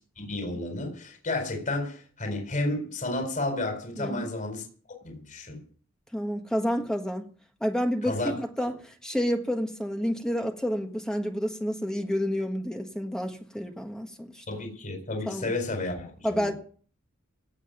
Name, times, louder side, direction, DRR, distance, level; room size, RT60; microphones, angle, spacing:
voice 1, 0.2-4.7 5.0-5.6 8.0-8.3 8.6-8.7 14.5-16.5, left 2 dB, 40° left, 4.3 m, -32 dB
voice 2, 4.0-4.3 6.1-7.3 7.6-14.4 15.3-15.5 16.2-16.5, equal, 5° left, 1.4 m, -29 dB
17.5 x 6.6 x 9.3 m
head